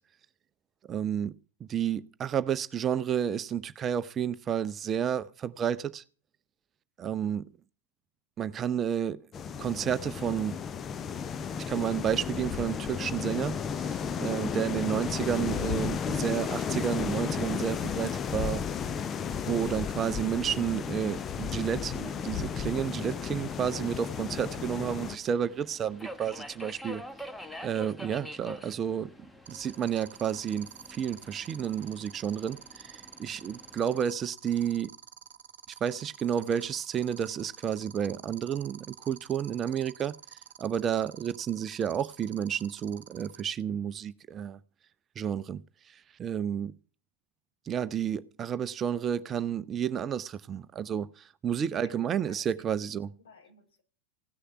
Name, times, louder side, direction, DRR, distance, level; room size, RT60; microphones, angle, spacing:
voice 1, 0.9-1.3 1.7-6.0 7.0-7.4 8.4-9.2 9.6-10.5 11.7-13.5 14.2-18.6 19.5-27.0 27.6-29.1 29.5-30.7 31.0-32.6 33.2-34.9 35.8-38.8 39.1-40.1 40.6-44.6 45.2-45.6 46.2-46.7 47.7-51.1 51.4-53.1, right 8 dB, 25° right, 0.6 m, -31 dB
sound 1, 9.3-25.2, left 7 dB, 25° left, 0.7 m, -33 dB
Subway metro underground, 22.5-34.1, equal, 5° left, 1.2 m, -47 dB
sound 2, 29.5-43.4, right 8 dB, 60° right, 1.0 m, -48 dB
voice 2, 51.8-53.8, left 4 dB, 65° left, 5.7 m, -59 dB
16.5 x 6.7 x 9.1 m
figure-of-eight pair, 90°, 0 cm